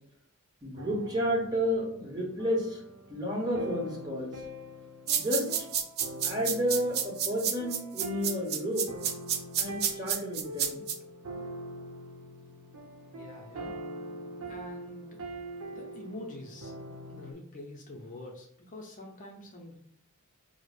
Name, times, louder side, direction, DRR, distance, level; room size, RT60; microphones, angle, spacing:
voice 1, 0.6-2.8 3.1-4.4 5.1-5.5 6.2-8.9 9.6-10.8, equal, 20° right, -3 dB, 1.0 m, -31 dB
sound 1, 0.8-17.3, right 1 dB, 80° right, 0.7 m, -43 dB
sound 2, 5.1-11.0, right 9 dB, 45° right, 0.4 m, -30 dB
voice 2, 13.1-13.8 14.4-15.2 15.7-16.7 17.1-19.8, left 1 dB, 35° left, 0 dB, 0.5 m, -45 dB
4.8 x 2.0 x 2.4 m, 0.73 s
head